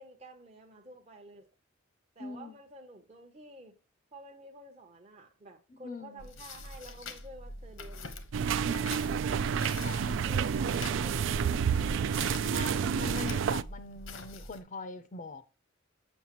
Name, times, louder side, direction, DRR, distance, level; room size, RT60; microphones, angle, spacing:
voice 1, 0.0-1.5 2.2-3.8 4.1-8.1 8.4-9.7 10.2-13.0, right 1 dB, 30° right, 0.7 m, -50 dB
voice 2, 2.2-2.6 5.7-6.2 8.7-8.9 9.8-10.3 12.5-15.4, left 4 dB, 40° left, 0.5 m, -42 dB
sound 1, 6.2-14.6, left 2 dB, 85° left, 1.0 m, -45 dB
sound 2, 8.3-13.6, right 7 dB, 70° right, 0.3 m, -29 dB
7.1 x 6.3 x 2.9 m
head